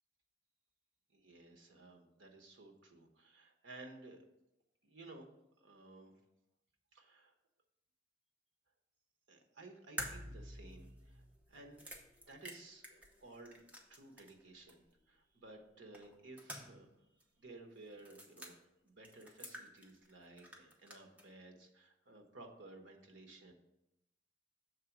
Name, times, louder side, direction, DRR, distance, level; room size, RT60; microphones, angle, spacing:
voice 1, 1.1-4.3 4.8-5.3 5.6-6.1 6.9-7.3 9.3-11.9 12.2-13.6 13.9-16.9 17.4-18.6 18.8-23.5, right 2 dB, 90° right, 3 dB, 1.1 m, -56 dB
sound 1, 10.0-14.4 14.7-14.8 15.9-16.9 17.2-17.3 18.0-18.5 19.0-20.1 20.4-21.3, equal, 10° right, 0.8 m, -49 dB
6.6 x 4.0 x 5.9 m, 0.89 s
head